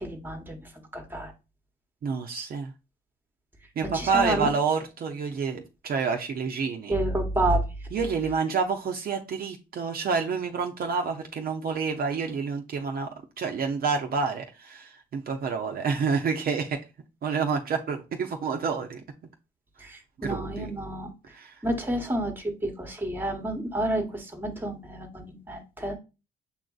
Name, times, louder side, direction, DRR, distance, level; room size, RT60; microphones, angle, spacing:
voice 1, 0.0-1.3 3.8-4.5 6.9-7.9 19.8-21.1 21.6-26.0, right 1 dB, 10° right, 4 dB, 1.0 m, -29 dB
voice 2, 2.0-2.7 3.8-6.9 7.9-13.1 13.4-16.8 17.2-19.0 20.2-20.7 21.3-21.6, right 5 dB, 50° right, 3 dB, 0.6 m, -28 dB
6.9 x 2.5 x 2.3 m, 0.29 s
cardioid pair, 90°, 20 cm